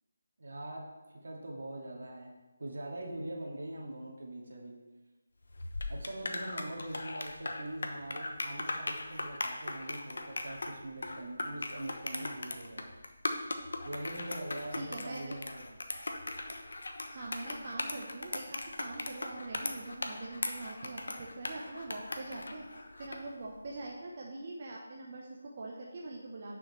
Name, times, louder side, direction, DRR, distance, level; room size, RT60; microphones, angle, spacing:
voice 1, 0.4-0.9 1.2-4.8 5.9-12.9 13.8-15.8, right 1 dB, 70° right, -1 dB, 2.1 m, -42 dB
sound 1, 5.5-23.3, left 2 dB, 70° left, 1.0 m, -39 dB
voice 2, 14.7-15.4 17.1-22.7 23.0-26.6, right 2 dB, 40° right, -3 dB, 1.1 m, -43 dB
10.5 x 6.2 x 3.3 m, 1.1 s
figure-of-eight pair, 160°, 0 cm